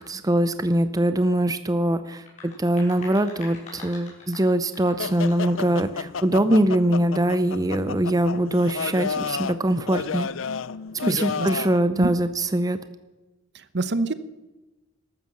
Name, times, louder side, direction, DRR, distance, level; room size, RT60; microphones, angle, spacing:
voice 1, 0.1-10.3 11.0-12.8, right 1 dB, 20° right, 11 dB, 0.6 m, -22 dB
sound 1, 2.1-5.8, left 3 dB, 35° left, 6.2 m, -45 dB
sound 2, 5.0-11.8, left 6 dB, 75° left, 0.6 m, -32 dB
voice 2, 11.0-11.5 12.0-12.1 13.5-14.1, right 2 dB, 55° right, 14 dB, 0.9 m, -26 dB
14.0 x 13.0 x 7.3 m, 1.1 s
head